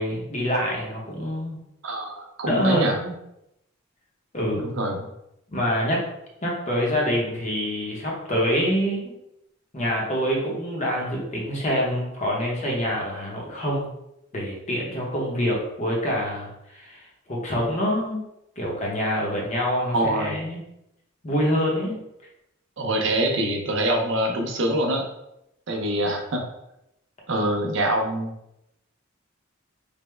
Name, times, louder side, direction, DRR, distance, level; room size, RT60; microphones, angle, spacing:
voice 1, 0.0-1.6 2.4-3.1 4.3-4.7 5.5-6.0 6.4-9.1 9.7-13.9 14.3-18.2 18.6-20.6 21.2-22.0, equal, 35° left, -3 dB, 0.8 m, -26 dB
voice 2, 1.8-3.0 4.6-5.1 19.9-20.4 22.8-25.1 25.7-26.4 27.3-28.3, right 1 dB, 60° right, 2 dB, 0.5 m, -25 dB
3.4 x 2.1 x 3.1 m, 0.84 s
head